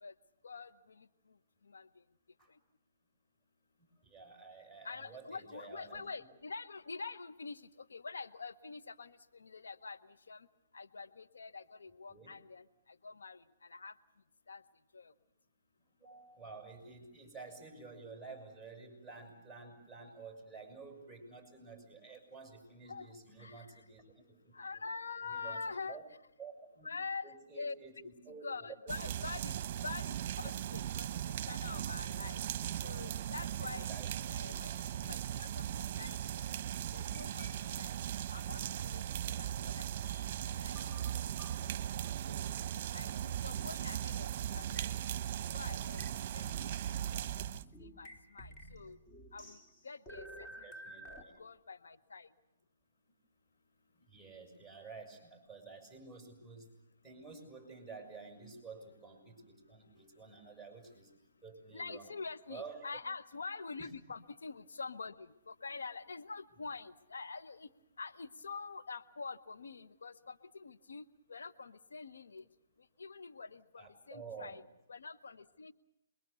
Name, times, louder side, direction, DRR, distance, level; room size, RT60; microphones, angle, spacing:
voice 1, 4.0-6.3 12.1-12.3 16.0-24.8 25.2-26.0 26.4-26.9 27.2-28.6 29.0-29.1 30.4-30.5 33.6-34.1 41.8-42.5 50.6-51.4 53.9-56.7 57.0-61.1 61.4-62.1 62.5-62.9 63.8-63.9 73.8-74.6, right 4 dB, 5° left, 1 dB, 6.5 m, -51 dB
voice 2, 4.8-10.0 10.3-10.5 10.7-12.6 13.0-13.9 14.5-14.6 14.9-15.1 22.9-23.8 24.5-26.0 26.8-27.7 28.4-31.1 31.4-32.4 32.8-36.2 36.9-38.0 38.3-39.9 40.6-40.9 41.6-41.7 42.3-42.5 42.9-45.0 45.5-46.7 47.1-47.4 47.8-49.0 49.3-49.6 49.8-50.5 51.4-52.3 61.7-67.7 68.0-72.4 73.0-74.6 74.9-75.7, left 4 dB, 85° left, 11 dB, 0.9 m, -46 dB
sound 1, 28.9-47.6, right 11 dB, 45° right, 0.9 m, -38 dB
sound 2, 34.0-38.1 38.4-41.7 42.0-42.1 42.5-42.6 43.4-43.5 44.1-44.2 44.5-44.9 45.9-51.2, equal, 25° left, 3.3 m, -54 dB
28.0 x 22.5 x 6.9 m, 0.87 s
hypercardioid pair, 145°, 0 cm